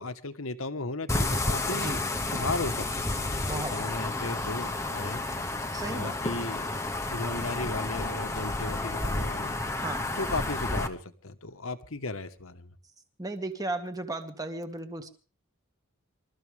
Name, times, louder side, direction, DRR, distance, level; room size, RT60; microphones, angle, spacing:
voice 1, 0.0-2.0 2.3-5.2 5.6-6.7 7.1-9.5 10.1-12.7, left 3 dB, 70° left, 9 dB, 1.4 m, -36 dB
sound 1, 1.1-10.9, left 2 dB, 15° left, 1.1 m, -31 dB
voice 2, 3.4-3.7 5.7-6.2 9.8-10.0 13.2-15.1, right 2 dB, 15° right, 7 dB, 1.8 m, -35 dB
26.0 x 14.0 x 3.5 m, 0.38 s
head